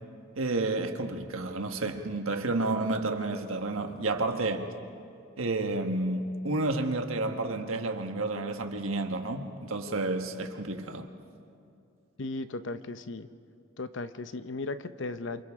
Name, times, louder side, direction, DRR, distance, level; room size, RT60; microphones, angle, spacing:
voice 1, 0.3-4.7 5.4-11.1, right 2 dB, 85° right, 5 dB, 1.4 m, -30 dB
voice 2, 12.2-13.3 13.8-15.4, left 3 dB, 65° left, 11 dB, 0.7 m, -36 dB
28.0 x 27.5 x 3.7 m, 2.5 s
head